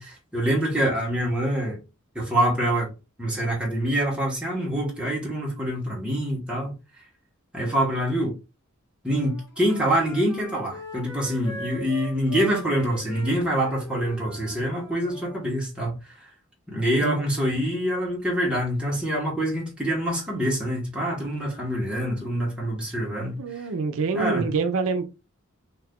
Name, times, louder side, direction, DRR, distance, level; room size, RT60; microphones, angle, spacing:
voice 1, 0.0-1.8 2.1-2.9 3.2-6.7 7.5-8.3 9.0-16.3 16.7-23.4 24.1-24.4, equal, 5° right, 1.1 m, -25 dB
Wind instrument woodwind instrument, 9.1-15.5, right 2 dB, 15° left, 1.4 m, -40 dB
voice 2, 23.4-25.0, right 4 dB, 80° right, 0.5 m, -26 dB
2.7 x 2.4 x 3.5 m
head